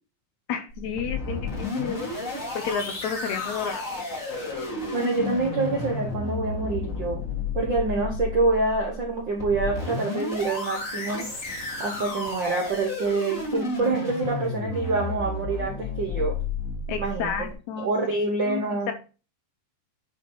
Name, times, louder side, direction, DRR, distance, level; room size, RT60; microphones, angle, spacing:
voice 1, 0.5-2.0 2.6-3.9 16.9-18.2 18.5-18.9, left 7 dB, 75° left, 7 dB, 1.9 m, -31 dB
sound 1, 0.7-17.5, left 3 dB, 35° left, 1.4 m, -32 dB
voice 2, 4.9-7.2 7.5-11.3 11.8-16.4 17.0-17.3 17.8-18.9, right 3 dB, 65° right, 0 dB, 1.1 m, -26 dB
10.5 x 4.4 x 2.8 m, 0.33 s
omnidirectional pair, 3.8 m